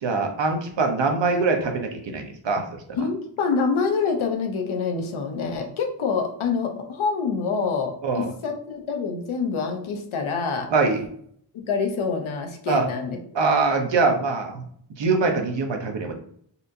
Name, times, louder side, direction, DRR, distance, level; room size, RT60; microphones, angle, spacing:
voice 1, 0.0-2.6 8.0-8.3 10.7-11.0 12.7-12.9 13.3-14.6 15.0-16.1, right 4 dB, 65° right, 4 dB, 0.8 m, -23 dB
voice 2, 2.9-10.7 11.5-13.2, left 5 dB, 85° left, 3 dB, 0.7 m, -26 dB
4.2 x 2.6 x 2.6 m, 0.63 s
wide cardioid pair, 135°, 47 cm